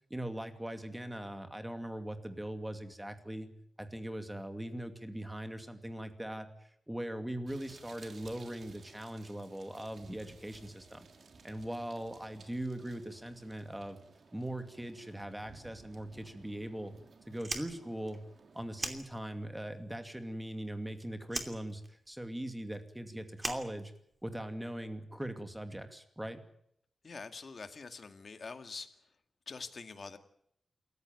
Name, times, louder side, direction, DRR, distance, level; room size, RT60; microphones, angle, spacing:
voice 1, 0.1-3.5 3.8-11.1 11.4-14.0 14.3-16.9 17.3-18.2 18.5-23.9 24.2-26.4, right 1 dB, 5° right, 7 dB, 2.5 m, -40 dB
sound 1, 7.5-18.9, right 4 dB, 55° right, 3.1 m, -58 dB
Fire, 17.4-19.6 19.9-20.9 21.3-24.4, right 2 dB, 20° right, 2.8 m, -41 dB
voice 2, 27.0-28.9 29.5-30.2, left 4 dB, 45° left, 8 dB, 2.0 m, -45 dB
27.5 x 15.0 x 9.4 m, 0.71 s
wide cardioid pair, 145°, 0 cm